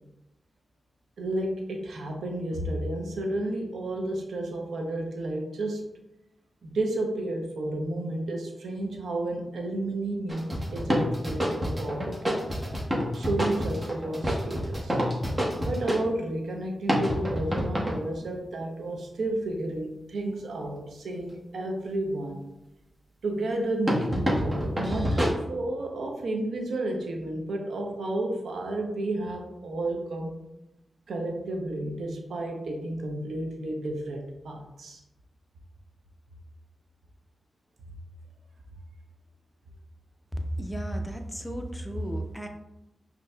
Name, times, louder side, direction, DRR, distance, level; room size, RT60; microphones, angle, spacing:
voice 1, 1.2-5.8 6.6-12.2 13.1-15.0 15.6-22.4 23.2-30.4 31.1-35.0, right 1 dB, 85° right, 2 dB, 0.6 m, -31 dB
sound 1, 10.3-16.0 16.9-18.0 23.9-25.3, equal, 30° right, 1.0 m, -28 dB
voice 2, 40.6-42.5, right 1 dB, 5° left, 4 dB, 0.6 m, -33 dB
5.3 x 2.6 x 2.2 m, 0.92 s
cardioid pair, 45°, 0 cm